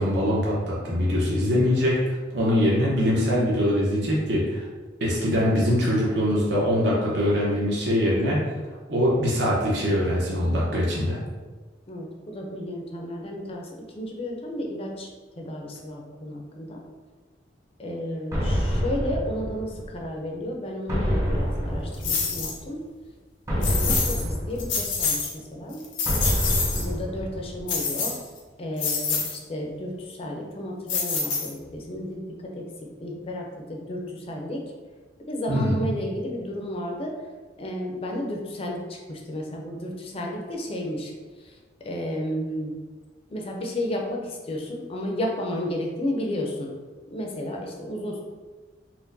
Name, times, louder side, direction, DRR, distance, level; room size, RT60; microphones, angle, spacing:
voice 1, 0.0-4.7 5.0-8.4 8.9-11.2 35.5-35.8, equal, 65° right, -6 dB, 0.8 m, -23 dB
voice 2, 11.9-15.1 15.4-16.8 17.8-22.8 23.5-25.8 26.7-28.2 28.6-32.6 33.0-34.7 35.3-37.2 37.6-42.7 43.3-46.8 47.1-48.2, left 1 dB, 30° left, 0 dB, 0.5 m, -32 dB
sound 1, 18.3-20.1 20.9-22.6 23.5-25.3 26.1-27.8, equal, 15° right, 0.6 m, -27 dB
sound 2, 22.0-22.6 23.6-24.2 24.6-25.3 25.7-26.9 27.7-28.4 28.8-29.4 30.9-31.7, left 5 dB, 90° left, 0.7 m, -26 dB
4.3 x 2.2 x 2.6 m, 1.4 s
head